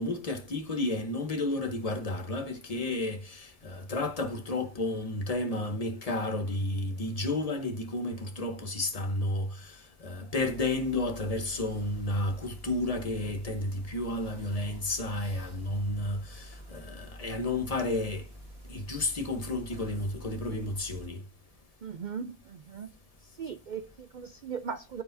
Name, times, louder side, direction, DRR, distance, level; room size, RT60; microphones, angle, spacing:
voice 1, 0.0-18.3 18.7-21.2, left 2 dB, 30° left, 1.0 m, -32 dB
sound 1, 10.4-21.1, right 1 dB, 50° right, 2.2 m, -48 dB
voice 2, 21.8-22.9 23.4-25.0, right 6 dB, 70° right, 0.4 m, -38 dB
12.0 x 4.7 x 2.6 m
omnidirectional pair, 1.3 m